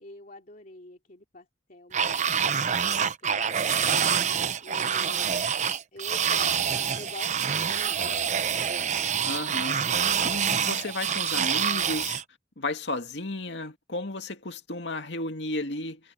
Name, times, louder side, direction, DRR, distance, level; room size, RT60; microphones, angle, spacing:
voice 1, 0.0-3.9 4.6-5.3 5.9-8.3, left 2 dB, 50° left, 2.8 m, -47 dB
sound 1, 1.9-12.2, right 7 dB, 40° right, 0.8 m, -26 dB
voice 2, 9.2-9.8 10.2-12.2 12.6-16.0, left 2 dB, 80° left, 2.3 m, -33 dB
head